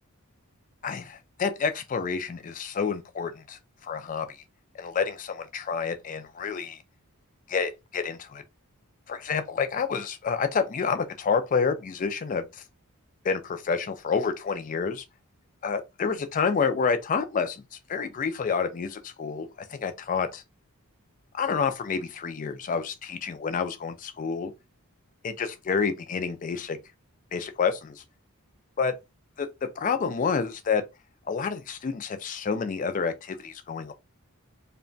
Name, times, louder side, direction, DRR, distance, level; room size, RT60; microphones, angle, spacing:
voice 1, 0.8-4.3 4.8-6.8 7.5-8.4 9.1-12.4 13.2-15.0 15.6-17.6 17.9-20.4 21.4-24.5 25.2-26.8 27.3-28.0 28.8-28.9 29.4-30.8 31.3-33.9, left 5 dB, 35° left, 0.3 m, -29 dB
2.8 x 2.2 x 2.6 m
head